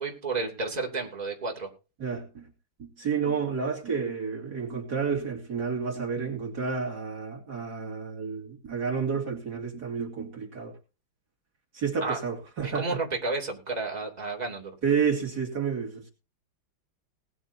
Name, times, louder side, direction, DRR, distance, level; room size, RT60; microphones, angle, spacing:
voice 1, 0.0-1.7 12.0-12.2 12.6-14.7, right 3 dB, 20° right, 0 dB, 2.9 m, -31 dB
voice 2, 2.0-2.5 2.8-10.7 11.7-13.0 14.8-16.1, right 6 dB, 55° right, 0 dB, 3.0 m, -30 dB
20.0 x 10.0 x 2.8 m, 0.31 s
omnidirectional pair, 2.2 m